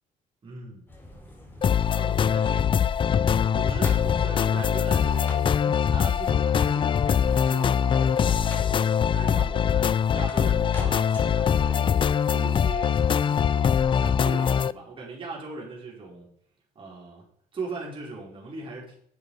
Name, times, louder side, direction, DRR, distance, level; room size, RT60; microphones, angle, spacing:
voice 1, 0.4-0.9 1.9-2.7 3.5-12.0 12.3-16.3 16.7-17.2 17.5-19.0, right 3 dB, 30° right, -3 dB, 4.9 m, -39 dB
sound 1, 0.9-12.4, left 1 dB, 10° left, 4.2 m, -46 dB
sound 2, 1.6-14.7, left 8 dB, 30° left, 0.4 m, -23 dB
11.0 x 7.9 x 5.0 m, 0.64 s
cardioid pair, 110°, 17 cm